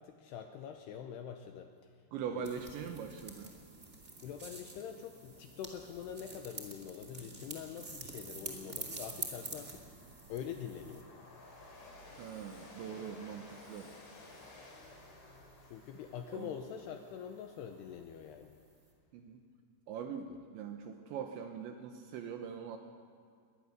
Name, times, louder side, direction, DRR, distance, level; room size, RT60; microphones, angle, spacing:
voice 1, 0.0-1.7 2.3-2.8 4.2-9.8 10.3-11.0 15.6-18.6 20.3-20.4, left 8 dB, 85° left, 6 dB, 2.4 m, -45 dB
voice 2, 2.1-3.6 12.2-13.9 16.3-16.5 19.1-19.4 19.9-22.8, right 7 dB, 75° right, 5 dB, 3.0 m, -42 dB
sound 1, 2.4-11.0, right 3 dB, 35° right, 1.1 m, -47 dB
Train, 8.2-18.6, left 2 dB, 50° left, 5.7 m, -56 dB
22.5 x 19.5 x 6.6 m, 2.1 s
omnidirectional pair, 5.9 m